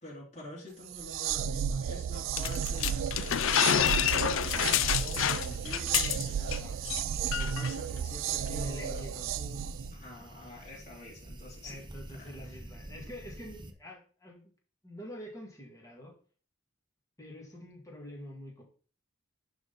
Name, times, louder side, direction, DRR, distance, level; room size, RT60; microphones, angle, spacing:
voice 1, 0.0-6.6 7.2-12.6, left 1 dB, 35° left, -4 dB, 2.7 m, -47 dB
sound 1, 0.9-9.9, right 8 dB, 75° right, 0.3 m, -33 dB
sound 2, 2.4-6.6 6.9-7.0 7.3-7.7, left 10 dB, 75° left, 0.4 m, -28 dB
sound 3, 4.5-13.7, right 1 dB, 25° right, 0.8 m, -47 dB
voice 2, 8.4-9.4 11.6-14.5 14.8-16.1 17.2-18.6, equal, 15° left, -1 dB, 2.1 m, -46 dB
11.5 x 3.8 x 4.1 m, 0.41 s
head